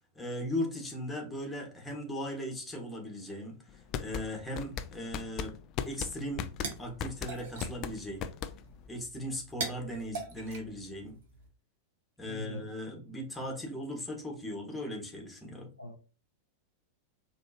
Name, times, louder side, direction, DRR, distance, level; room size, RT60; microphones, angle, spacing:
voice 1, 0.1-5.6 5.8-6.5 6.8-8.3 8.9-11.2 12.2-15.7, equal, 10° left, 1 dB, 1.4 m, -38 dB
sound 1, 3.7-8.9, left 8 dB, 35° left, 0.4 m, -37 dB
sound 2, 6.2-11.5, right 4 dB, 55° right, 1.0 m, -43 dB
voice 2, 12.3-12.6 15.8-16.0, left 1 dB, 85° left, 4 dB, 0.6 m, -41 dB
4.3 x 2.9 x 2.9 m, 0.34 s
figure-of-eight pair, 90°, 0 cm